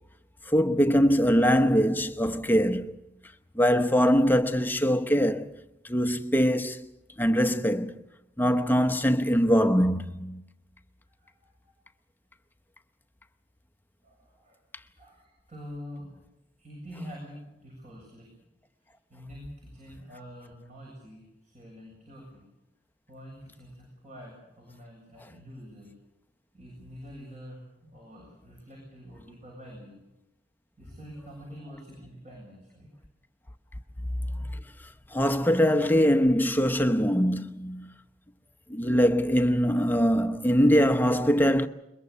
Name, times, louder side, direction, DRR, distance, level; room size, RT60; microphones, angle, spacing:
voice 1, 0.5-3.0 3.5-5.5 5.8-6.9 7.2-8.0 8.4-10.4 34.5-34.6 35.1-37.9 38.7-41.7, equal, 10° left, 0.9 m, -23 dB
voice 2, 11.2-11.5 14.0-14.6 15.0-16.1 16.6-18.3 19.1-22.4 23.1-25.9 26.5-30.0 30.8-32.9 33.7-33.8, equal, 40° right, 7.4 m, -46 dB
22.5 x 22.0 x 6.9 m
head